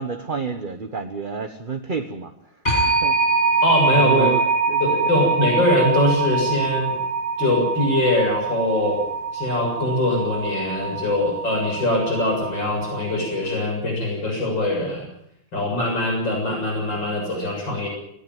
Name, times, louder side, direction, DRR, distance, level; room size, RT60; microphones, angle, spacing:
voice 1, 0.0-2.3 2.7-3.2 3.9-4.4 4.7-5.0, right 4 dB, 30° right, 7 dB, 1.2 m, -28 dB
sound 1, 2.7-13.3, right 4 dB, 25° left, 6.4 m, -24 dB
voice 2, 3.6-4.3 4.8-7.0 7.4-9.0 9.3-15.1 15.5-17.9, left 1 dB, 70° left, 1 dB, 7.7 m, -22 dB
21.0 x 18.0 x 9.2 m, 0.77 s
omnidirectional pair, 2.1 m